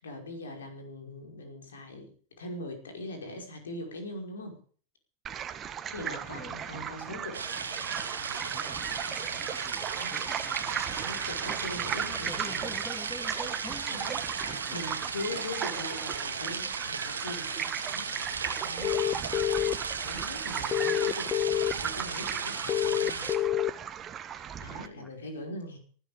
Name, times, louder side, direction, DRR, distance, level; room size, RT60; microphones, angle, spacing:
voice 1, 0.0-4.6 5.9-7.4 9.9-10.2 10.9-12.7 13.9-21.5 21.8-23.2 24.3-25.8, left 2 dB, 65° left, 4 dB, 5.4 m, -42 dB
sound 1, 5.3-24.9, right 9 dB, 25° right, 1.5 m, -37 dB
voice 2, 6.1-6.9 8.4-8.8 9.4-10.6 12.1-15.0 15.3-15.5 24.8-25.1, left 1 dB, 10° left, 7 dB, 2.6 m, -46 dB
sound 2, 7.3-23.4, right 5 dB, 75° right, 2.1 m, -36 dB
sound 3, 18.8-19.7 20.7-21.7 22.7-23.7, left 12 dB, 25° left, 0.8 m, -27 dB
19.5 x 12.0 x 5.2 m, 0.43 s
figure-of-eight pair, 90°, 0 cm